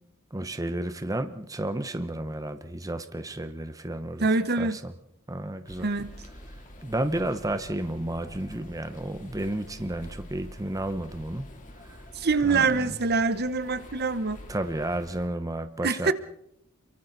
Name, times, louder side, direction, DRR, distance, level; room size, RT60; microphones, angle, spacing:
voice 1, 0.3-4.3 4.5-4.9 5.3-5.9 6.8-11.5 11.8-12.0 12.4-13.0 14.5-16.1, right 1 dB, 15° right, 10 dB, 0.9 m, -32 dB
voice 2, 4.2-4.8 5.8-6.2 12.1-14.4 15.8-16.1, right 4 dB, 50° right, 12 dB, 1.1 m, -25 dB
sound 1, 5.7-15.3, left 1 dB, 40° left, 3.2 m, -46 dB
29.0 x 23.5 x 4.1 m, 0.77 s
head